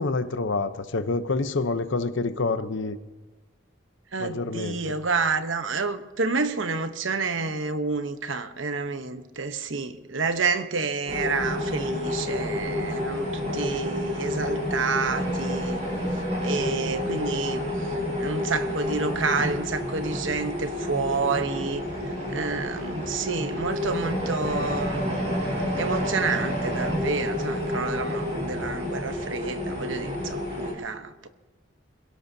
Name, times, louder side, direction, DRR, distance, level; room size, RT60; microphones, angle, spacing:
voice 1, 0.0-3.0 4.2-4.9, left 3 dB, 75° left, 0.8 m, -27 dB
voice 2, 4.1-15.8 16.4-21.8 22.3-25.3 25.8-31.3, right 4 dB, 80° right, 1.0 m, -29 dB
sound 1, 11.1-30.7, left 1 dB, 35° right, 6.8 m, -29 dB
27.0 x 17.0 x 2.8 m
head